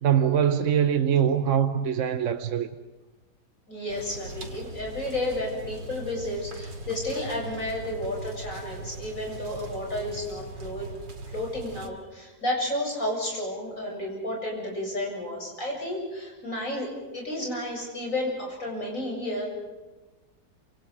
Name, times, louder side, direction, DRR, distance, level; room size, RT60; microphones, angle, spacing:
voice 1, 0.0-2.7, right 8 dB, 55° right, 1.0 m, -23 dB
voice 2, 3.7-10.9 11.3-16.9 17.1-19.5, left 1 dB, 45° left, 8.2 m, -32 dB
sound 1, 3.9-11.9, right 2 dB, 85° right, 3.1 m, -40 dB
28.0 x 27.0 x 5.0 m
omnidirectional pair, 1.9 m